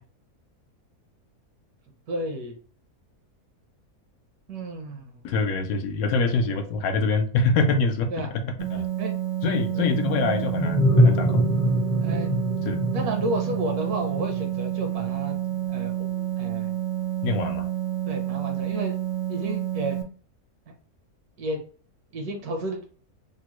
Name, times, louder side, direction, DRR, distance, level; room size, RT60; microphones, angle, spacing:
voice 1, 2.1-2.5 4.5-5.3 6.5-6.6 8.1-8.3 8.7-9.1 9.8-9.9 12.0-12.3 12.9-15.4 15.7-16.1 16.4-16.7 18.1-19.0 19.3-20.0 20.7-20.8 21.4-21.6 22.1-22.8, right 1 dB, 80° right, 3 dB, 1.3 m, -32 dB
voice 2, 5.2-8.1 8.4-8.9 9.4-11.4 12.6-12.8 17.2-17.7, left 3 dB, 75° left, 6 dB, 1.0 m, -25 dB
sound 1, 8.6-20.0, right 13 dB, 60° right, 0.8 m, -29 dB
sound 2, 9.7-15.1, equal, 20° left, 0.5 m, -24 dB
3.7 x 2.0 x 2.9 m, 0.42 s
omnidirectional pair, 1.6 m